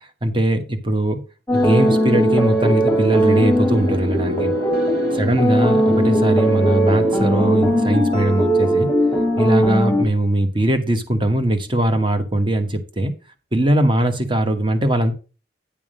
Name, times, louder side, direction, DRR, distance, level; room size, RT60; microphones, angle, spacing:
voice 1, 0.2-1.2 1.5-4.5 5.1-8.9 9.4-13.1 13.5-15.1, right 1 dB, 30° right, 1.2 m, -20 dB
sound 1, 1.5-10.0, equal, 10° left, 1.1 m, -19 dB
sound 2, 1.5-10.0, equal, 60° right, 1.7 m, -29 dB
10.0 x 3.6 x 6.2 m
head